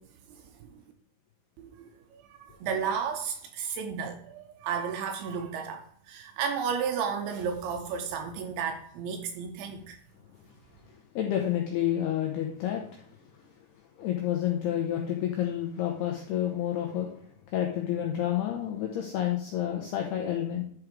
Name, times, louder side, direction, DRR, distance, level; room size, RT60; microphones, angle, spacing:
voice 1, 1.6-10.0, right 6 dB, 80° right, 5 dB, 2.8 m, -33 dB
voice 2, 11.1-13.1 14.0-17.1 17.5-20.6, left 11 dB, 80° left, 1 dB, 2.3 m, -29 dB
11.5 x 4.9 x 4.7 m, 0.64 s
omnidirectional pair, 5.8 m